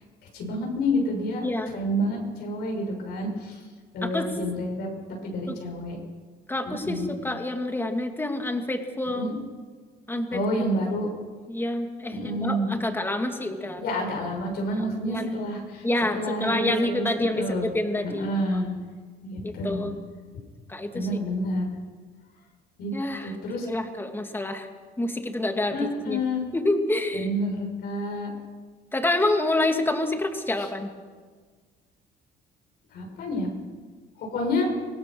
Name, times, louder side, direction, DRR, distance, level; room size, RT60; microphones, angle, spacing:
voice 1, 0.3-1.5 1.7-3.6 3.9-4.9 5.2-6.0 6.6-7.1 9.1-9.3 10.3-11.1 12.1-12.7 13.8-15.8 16.1-17.7 18.0-18.7 19.2-19.9 20.9-21.7 22.8-22.9 23.2-23.7 25.7-26.4 27.1-28.3 30.6-30.7 32.9-33.5 34.2-34.7, equal, 70° left, 1 dB, 6.6 m, -29 dB
voice 2, 1.4-1.7 4.0-4.3 5.5-5.6 6.5-9.3 10.1-10.9 11.5-13.8 14.7-15.4 15.8-18.6 19.4-20.0 20.7-21.1 22.9-23.3 23.6-24.7 25.0-25.8 26.1-26.2 26.5-27.3 28.9-30.9, left 1 dB, 10° left, 5 dB, 2.3 m, -28 dB
24.5 x 18.5 x 6.3 m, 1.5 s
cardioid pair, 110°, 17 cm